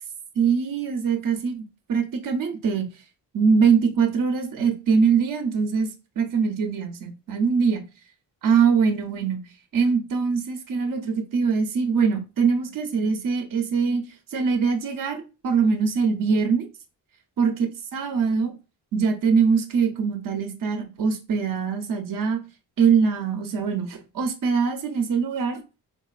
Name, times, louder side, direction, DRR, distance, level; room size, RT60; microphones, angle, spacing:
voice 1, 0.4-2.9 3.3-7.8 8.4-14.0 14.3-16.7 17.4-17.5 17.9-18.5 18.9-22.4 22.8-25.6, right 5 dB, 55° right, 0.7 m, -23 dB
3.8 x 2.5 x 2.4 m
cardioid pair, 75°, 40 cm